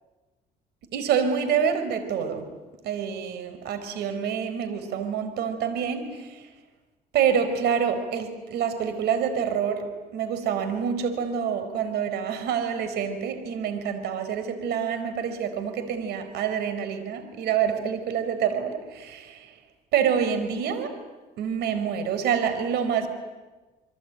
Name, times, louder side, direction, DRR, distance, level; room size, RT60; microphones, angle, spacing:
voice 1, 0.9-2.5 2.8-6.5 7.1-9.9 10.1-19.5 19.9-20.9 21.4-23.1, right 7 dB, 75° right, 9 dB, 4.4 m, -27 dB
28.0 x 23.5 x 9.1 m, 1.2 s
cardioid pair, 110°, 17 cm